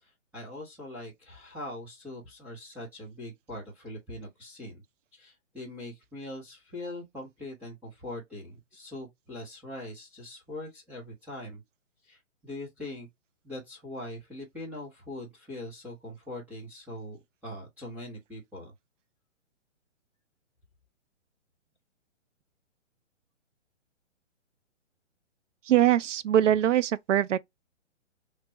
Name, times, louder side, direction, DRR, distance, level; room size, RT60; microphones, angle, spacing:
voice 1, 0.0-4.8 5.1-11.6 12.0-13.1 13.4-18.7, left 1 dB, 5° right, 0.8 m, -42 dB
voice 2, 25.6-27.4, right 11 dB, 75° right, 0.5 m, -22 dB
3.3 x 2.3 x 4.0 m
hypercardioid pair, 150°, 38 cm